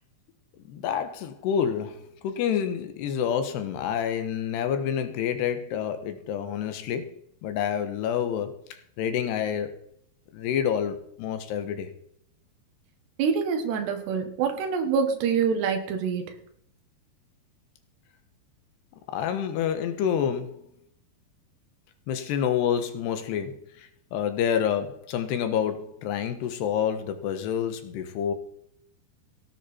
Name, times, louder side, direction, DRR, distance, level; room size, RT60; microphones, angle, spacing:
voice 1, 0.7-7.1 7.4-8.6 9.0-9.7 10.3-11.9 19.1-20.6 22.1-28.3, left 8 dB, 80° left, 3.3 m, -28 dB
voice 2, 13.2-16.2, right 6 dB, 75° right, 3.7 m, -26 dB
17.0 x 10.0 x 4.4 m
omnidirectional pair, 4.9 m